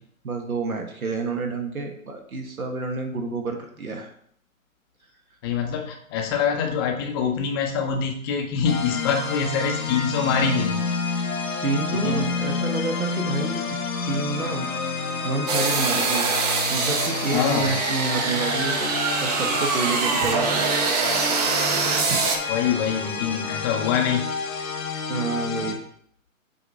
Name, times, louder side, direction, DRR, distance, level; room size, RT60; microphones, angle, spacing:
voice 1, 0.2-4.1 11.6-13.6 14.0-14.6 15.2-16.3 16.7-18.9 19.2-20.6 22.1-22.2 25.1-25.8, right 3 dB, 85° right, 3 dB, 1.4 m, -29 dB
voice 2, 5.4-10.8 11.9-12.3 17.3-17.7 22.5-24.3, left 6 dB, 20° left, 2 dB, 0.5 m, -25 dB
sound 1, 8.7-25.7, left 4 dB, 75° left, 1.3 m, -29 dB
sound 2, 15.5-22.4, right 5 dB, 30° right, 0.6 m, -24 dB
7.8 x 2.8 x 4.7 m, 0.65 s
figure-of-eight pair, 130°, 42 cm